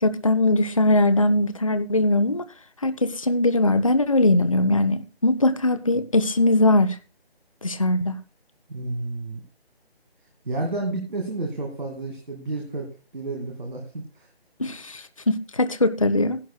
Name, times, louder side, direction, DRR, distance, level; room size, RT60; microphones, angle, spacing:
voice 1, 0.0-2.4 2.8-7.0 7.6-8.2 14.6-16.4, left 2 dB, 35° left, 0.4 m, -21 dB
voice 2, 8.7-9.4 10.4-13.9 14.1-14.3, right 2 dB, 50° right, 2.4 m, -31 dB
16.0 x 11.0 x 2.3 m
figure-of-eight pair, 160°, 31 cm